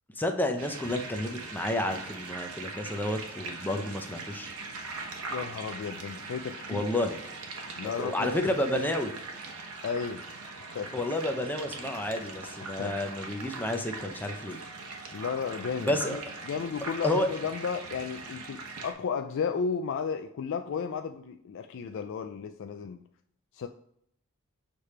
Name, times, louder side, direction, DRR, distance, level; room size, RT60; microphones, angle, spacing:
voice 1, 0.2-4.5 6.7-7.2 8.0-9.1 10.9-14.6 15.8-16.2 17.0-17.3, left 1 dB, 10° left, 5 dB, 0.6 m, -30 dB
sound 1, 0.6-18.9, right 3 dB, 70° right, 1.1 m, -41 dB
voice 2, 5.3-6.9 7.8-8.3 8.6-8.7 9.8-10.2 10.7-10.9 12.6-13.0 15.1-23.0 23.5-23.7, left 6 dB, 60° left, 6 dB, 0.3 m, -34 dB
6.8 x 3.3 x 4.2 m, 0.71 s
head